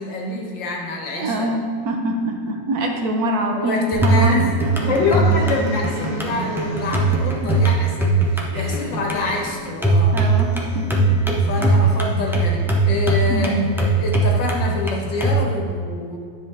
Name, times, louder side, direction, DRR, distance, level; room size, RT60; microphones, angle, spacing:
voice 1, 0.0-1.5 3.6-4.5 4.9-10.2 11.4-16.2, left 3 dB, 85° left, -1 dB, 2.1 m, -26 dB
voice 2, 1.1-4.3 4.6-4.7 7.1-7.5 8.5-8.9 10.1-11.1 11.5-11.8 13.3-13.7, right 1 dB, 60° right, 2 dB, 1.3 m, -25 dB
sound 1, 3.9-15.4, right 3 dB, 5° right, 0.4 m, -20 dB
sound 2, 4.6-7.5, right 2 dB, 35° right, 1.1 m, -30 dB
10.0 x 7.2 x 3.5 m, 2.1 s
omnidirectional pair, 2.0 m